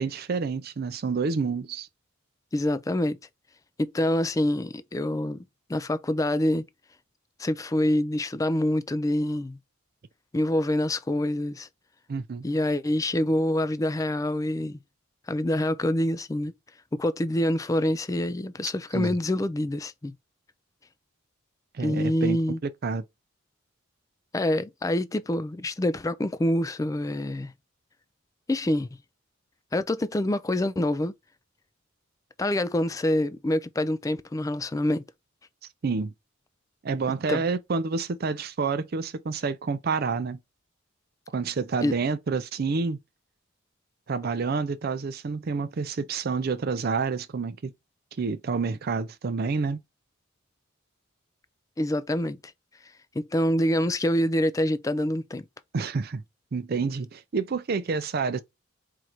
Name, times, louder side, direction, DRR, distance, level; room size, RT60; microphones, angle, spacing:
voice 1, 0.0-1.9 12.1-12.4 18.9-19.2 21.7-23.0 35.8-36.1 36.8-40.4 41.3-43.0 44.1-47.7 48.2-49.8 55.7-56.2 56.5-58.4, right 4 dB, 50° right, 0.4 m, -28 dB
voice 2, 2.5-3.2 3.8-5.4 5.7-6.6 7.4-9.6 10.3-11.7 12.4-14.8 15.3-16.5 16.9-20.1 21.8-22.6 24.3-27.5 28.5-28.9 29.7-31.1 32.4-35.0 37.3-37.4 41.8-41.9 51.8-52.4 53.2-55.4, left 1 dB, 15° left, 0.3 m, -26 dB
4.6 x 2.5 x 4.2 m
head